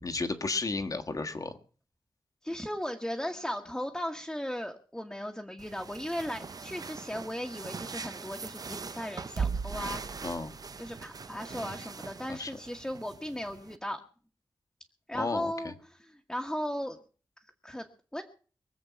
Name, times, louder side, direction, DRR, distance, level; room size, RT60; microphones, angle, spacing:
voice 1, 0.0-1.5 10.2-10.5 12.3-12.5 15.1-15.7, left 3 dB, 45° left, 7 dB, 1.5 m, -33 dB
voice 2, 2.4-10.2 10.8-14.0 15.1-17.0 17.6-17.9 18.1-18.2, equal, 5° left, 2 dB, 1.4 m, -37 dB
sound 1, 5.6-13.8, right 5 dB, 50° right, 0.8 m, -40 dB
23.0 x 7.9 x 5.8 m, 0.41 s
wide cardioid pair, 130°, 8 cm